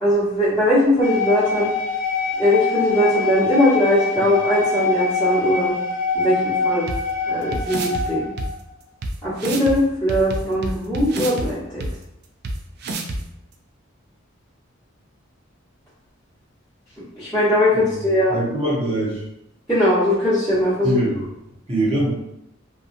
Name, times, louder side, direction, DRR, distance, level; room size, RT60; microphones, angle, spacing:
voice 1, 0.0-1.7 2.4-5.7 6.1-6.8 7.3-8.2 9.2-11.8 17.2-18.4 19.7-21.0, left 1 dB, 5° left, -16 dB, 1.0 m, -20 dB
sound 1, 1.0-8.5, left 4 dB, 25° left, 1.1 m, -24 dB
sound 2, 6.9-7.0 7.5-8.0 8.4-8.5 9.0-9.1 9.4-9.7 10.1-11.5 11.8-11.9 12.4-12.5 12.8-13.2, right 2 dB, 55° right, 0.4 m, -27 dB
voice 2, 18.3-19.2 20.8-21.2 21.7-22.2, right 1 dB, 30° right, -5 dB, 0.9 m, -23 dB
2.7 x 2.3 x 2.5 m, 0.84 s
head